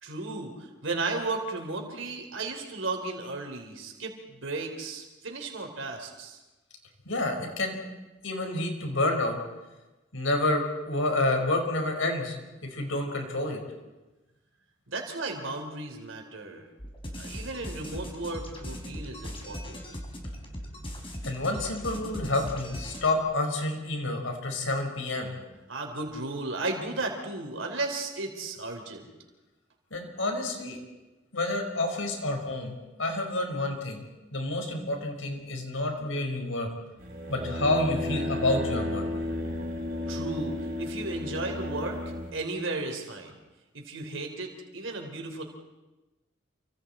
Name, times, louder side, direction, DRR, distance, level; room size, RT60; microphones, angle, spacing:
voice 1, 0.0-6.4 14.9-16.7 17.2-19.8 25.7-29.0 40.1-42.0 42.3-43.4 43.7-45.4, right 3 dB, 80° right, 3 dB, 3.7 m, -34 dB
voice 2, 7.0-7.8 8.2-9.4 10.1-12.4 12.6-13.6 21.2-25.3 29.9-30.8 31.3-32.7 33.0-34.0 34.3-36.7 37.3-39.1, left 2 dB, 85° left, 2 dB, 4.9 m, -29 dB
sound 1, 16.8-23.2, equal, 25° left, 3.9 m, -39 dB
sound 2, 37.0-42.3, left 1 dB, 45° right, 4.9 m, -33 dB
29.0 x 25.0 x 4.3 m, 1.1 s
head